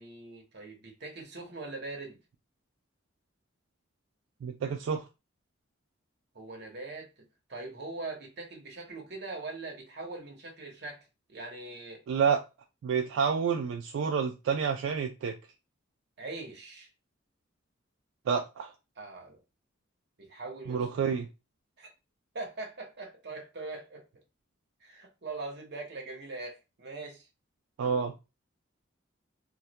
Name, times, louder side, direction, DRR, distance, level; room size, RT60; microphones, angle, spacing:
voice 1, 0.0-2.2 6.3-12.0 16.2-16.9 19.0-19.4 20.2-21.1 21.8-21.9 22.3-24.0 24.8-27.3, right 3 dB, 55° right, 0.8 m, -42 dB
voice 2, 4.4-5.0 12.1-12.4 12.8-15.4 18.3-18.7 20.7-21.3 27.8-28.1, right 6 dB, 80° right, 0.3 m, -29 dB
2.2 x 2.1 x 2.7 m
head